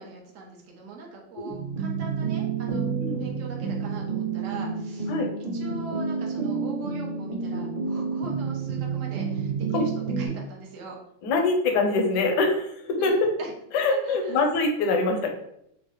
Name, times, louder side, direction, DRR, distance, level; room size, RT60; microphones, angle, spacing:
voice 1, 0.0-2.9 3.2-5.1 5.5-9.9 10.2-11.0 13.0-13.5 13.9-14.4, right 3 dB, 75° right, -1 dB, 0.7 m, -41 dB
sound 1, 1.5-10.3, right 5 dB, 60° right, 1.4 m, -29 dB
voice 2, 11.2-13.3 13.7-15.4, left 3 dB, 70° left, 3 dB, 1.0 m, -24 dB
4.6 x 2.1 x 3.0 m, 0.74 s
omnidirectional pair, 2.4 m